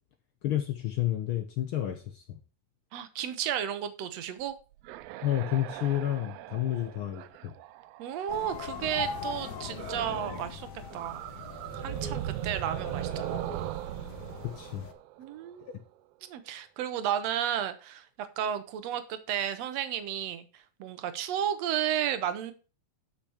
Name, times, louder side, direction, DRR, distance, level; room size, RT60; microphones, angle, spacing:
voice 1, 0.4-2.4 5.2-7.5 14.4-14.9 15.6-15.7, left 12 dB, 80° left, 8 dB, 1.2 m, -30 dB
voice 2, 2.9-4.5 8.0-10.7 10.9-11.2 11.7-13.4 15.2-15.8 16.2-22.5, right 10 dB, 65° right, 11 dB, 2.1 m, -33 dB
sound 1, 4.5-8.7 9.8-10.5 10.8-15.7, right 16 dB, 90° right, 1.4 m, -39 dB
sound 2, 8.3-14.9, left 5 dB, 55° left, 1.1 m, -40 dB
10.0 x 6.0 x 4.9 m, 0.34 s
omnidirectional pair, 3.5 m